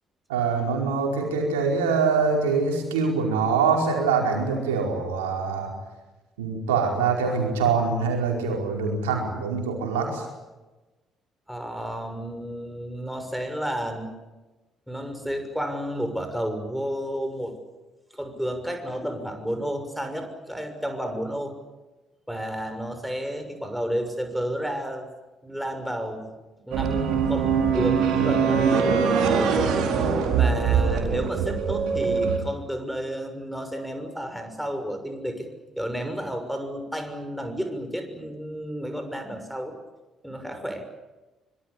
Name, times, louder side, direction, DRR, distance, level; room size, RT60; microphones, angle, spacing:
voice 1, 0.3-5.7 6.4-10.2, right 5 dB, 80° right, 1 dB, 5.0 m, -24 dB
voice 2, 11.5-14.1 14.9-17.5 18.1-21.6 22.3-25.1 25.4-26.3 26.7-28.7 29.4-29.8 30.4-35.5 35.8-39.7 40.2-40.9, equal, ahead, 6 dB, 6.5 m, -31 dB
sound 1, 26.7-32.4, right 6 dB, 65° right, 4.5 m, -22 dB
25.5 x 23.5 x 8.5 m, 1.1 s
figure-of-eight pair, 45°, 0 cm